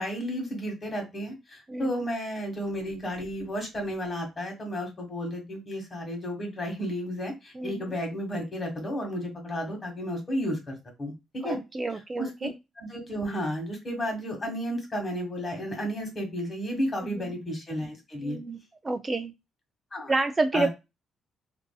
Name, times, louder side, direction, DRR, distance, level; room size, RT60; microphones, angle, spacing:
voice 1, 0.0-11.6 12.2-12.5 12.8-18.4 19.9-20.1 20.5-20.7, equal, 30° left, 2 dB, 1.3 m, -32 dB
voice 2, 7.6-7.9 11.4-12.5 17.0-17.3 18.2-18.6 18.8-19.3 20.1-20.7, right 3 dB, 25° right, 8 dB, 0.3 m, -29 dB
2.6 x 2.4 x 2.3 m, 0.24 s
cardioid pair, 105°, 0 cm